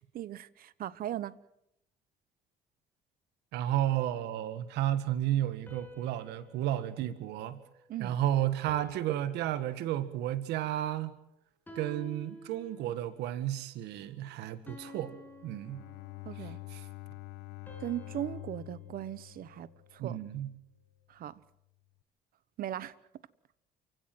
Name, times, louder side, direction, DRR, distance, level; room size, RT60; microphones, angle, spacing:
voice 1, 0.1-1.3 7.9-8.2 16.2-16.6 17.8-20.2 21.1-21.4 22.6-22.9, right 12 dB, 60° right, 1.1 m, -38 dB
voice 2, 3.5-7.6 8.0-11.1 11.8-15.1 15.4-15.8 16.7-16.9 20.0-20.5, right 12 dB, 85° right, 1.8 m, -32 dB
sound 1, 5.7-8.2 8.7-10.4 11.7-13.2 14.7-16.5 17.7-20.0, equal, 10° left, 6.5 m, -52 dB
Bowed string instrument, 15.3-20.5, left 17 dB, 90° left, 1.1 m, -47 dB
28.5 x 16.5 x 7.9 m
cardioid pair, 110°, 17 cm